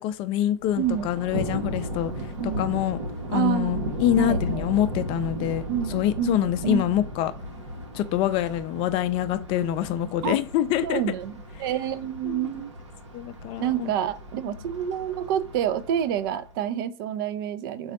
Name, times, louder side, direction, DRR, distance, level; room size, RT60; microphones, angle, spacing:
voice 1, 0.0-3.0 3.3-7.3 7.9-11.0 12.2-12.5 13.1-13.9 14.4-14.6, left 12 dB, 35° left, 0.4 m, -26 dB
Thunder, 0.6-16.5, equal, 75° right, 0.9 m, -35 dB
voice 2, 0.8-1.1 2.4-2.6 3.3-3.9 4.2-4.6 5.7-6.9 10.2-10.4 10.8-11.3 11.6-12.7 13.6-17.9, right 10 dB, 50° right, 0.4 m, -28 dB
4.0 x 2.3 x 4.0 m
figure-of-eight pair, 95°, 15 cm